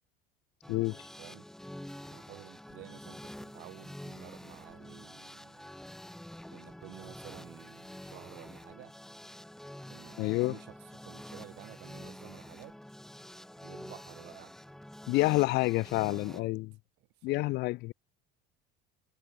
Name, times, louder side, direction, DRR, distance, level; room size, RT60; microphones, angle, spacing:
sound 1, 0.6-16.4, left 1 dB, ahead, 1.1 m, -48 dB
voice 1, 2.1-5.7 6.5-8.9 9.9-12.8 13.6-14.5 15.1-16.5 17.2-17.6, right 22 dB, 65° right, 4.1 m, -52 dB
voice 2, 10.2-10.5 15.1-16.7 17.2-17.9, left 21 dB, 60° left, 1.3 m, -28 dB
cardioid pair, 140°, 19 cm